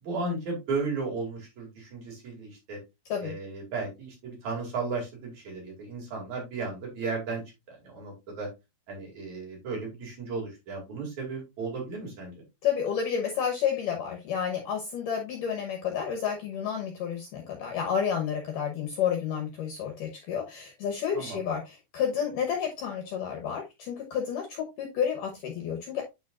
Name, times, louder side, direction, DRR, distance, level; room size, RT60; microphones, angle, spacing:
voice 1, 0.0-2.8 3.2-7.4 7.7-8.5 8.9-12.4 21.1-21.4, right 3 dB, 50° right, -1 dB, 3.2 m, -35 dB
voice 2, 12.6-26.1, left 8 dB, 70° left, 2 dB, 2.1 m, -30 dB
10.0 x 4.6 x 2.4 m, 0.23 s
omnidirectional pair, 4.8 m